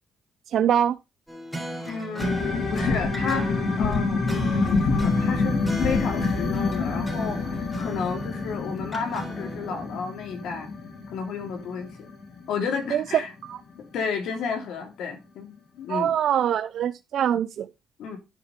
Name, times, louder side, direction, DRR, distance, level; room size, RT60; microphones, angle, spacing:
voice 1, 0.5-1.0 12.9-13.0 13.5-13.6 15.9-17.7, right 9 dB, 70° right, 0.5 m, -23 dB
sound 1, 1.3-9.8, right 1 dB, ahead, 3.6 m, -36 dB
voice 2, 1.9-10.7 11.1-12.1 12.5-13.3 13.9-16.1 18.0-18.2, left 6 dB, 80° left, 2.8 m, -32 dB
sound 2, 2.2-13.5 13.9-14.0, left 3 dB, 60° left, 3.1 m, -27 dB
10.0 x 4.9 x 5.1 m
cardioid pair, 90°, 0 cm